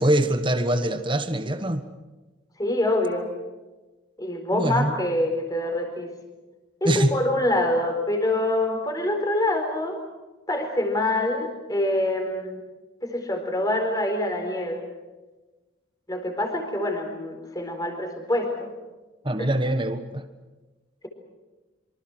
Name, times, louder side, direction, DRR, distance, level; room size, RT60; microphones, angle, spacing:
voice 1, 0.0-1.9 4.5-5.0 6.8-7.2 19.2-20.3, right 1 dB, 25° right, 8 dB, 1.3 m, -23 dB
voice 2, 2.6-3.3 4.2-6.1 6.8-10.0 10.5-12.6 13.0-14.9 16.1-18.7 19.4-19.5, left 1 dB, 20° left, 4 dB, 4.2 m, -25 dB
26.0 x 25.0 x 6.3 m, 1.2 s
head